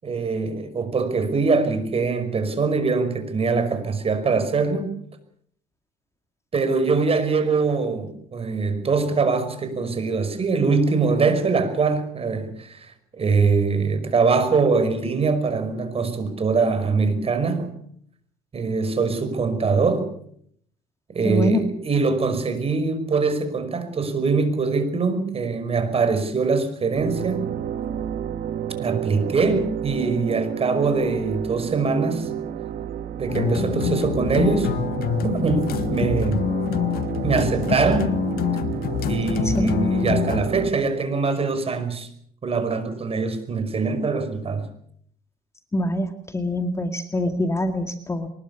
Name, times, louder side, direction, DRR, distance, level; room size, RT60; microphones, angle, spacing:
voice 1, 0.0-4.9 6.5-17.7 18.5-20.1 21.1-27.5 28.8-32.3 33.2-34.7 35.2-36.5 37.2-38.1 39.1-42.1 42.4-44.7, right 4 dB, 35° right, 5.4 m, -23 dB
voice 2, 21.2-21.7 39.4-39.7 45.7-48.3, left 1 dB, 15° left, 2.1 m, -24 dB
sound 1, 26.9-40.7, right 9 dB, 65° right, 2.1 m, -30 dB
sound 2, 33.3-40.5, left 9 dB, 65° left, 1.9 m, -26 dB
23.5 x 21.0 x 7.1 m
cardioid pair, 110°, 17 cm